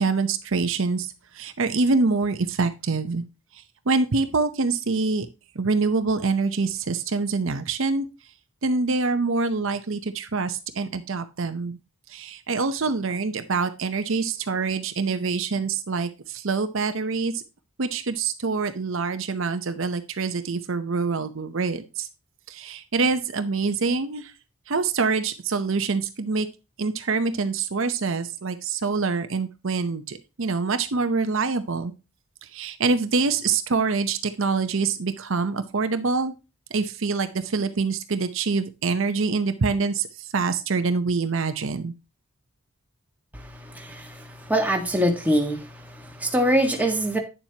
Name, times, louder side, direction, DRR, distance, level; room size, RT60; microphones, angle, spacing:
voice 1, 0.0-3.2 3.5-5.3 5.5-8.1 8.6-11.8 12.1-17.4 17.8-22.1 22.5-24.3 24.7-26.5 26.8-31.9 32.4-36.3 36.7-41.9, right 4 dB, 60° right, 9 dB, 0.7 m, -25 dB
voice 2, 43.3-47.2, equal, 5° right, 2 dB, 1.4 m, -24 dB
9.5 x 7.2 x 2.8 m, 0.28 s
head